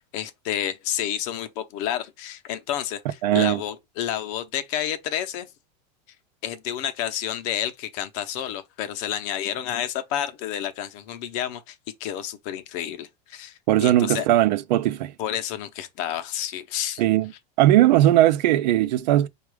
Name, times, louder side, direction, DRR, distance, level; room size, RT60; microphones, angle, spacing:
voice 1, 0.1-5.5 6.4-14.3 15.2-17.0, left 10 dB, 50° left, 0.7 m, -30 dB
voice 2, 3.2-3.6 13.7-15.1 17.0-17.3 17.6-19.3, right 14 dB, 85° right, 0.5 m, -19 dB
4.6 x 2.4 x 4.7 m
supercardioid pair, 155°, 21 cm